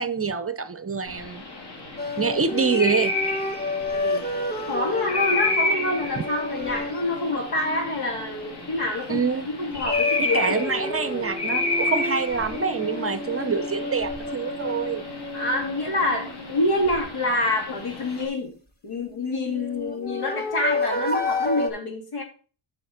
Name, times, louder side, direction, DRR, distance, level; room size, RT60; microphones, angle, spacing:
voice 1, 0.0-1.4 2.2-3.1 9.1-9.5 10.2-15.0, right 5 dB, 30° right, 0.6 m, -26 dB
sound 1, 1.1-18.3, left 2 dB, 50° left, 2.6 m, -31 dB
sound 2, 2.0-9.0 9.5-17.4 19.1-21.7, left 2 dB, 20° left, 1.6 m, -31 dB
voice 2, 3.9-4.2 4.7-10.9 15.3-18.6 18.8-22.2, left 2 dB, 85° left, 3.0 m, -27 dB
7.8 x 5.6 x 5.6 m
wide cardioid pair, 125°, 50 cm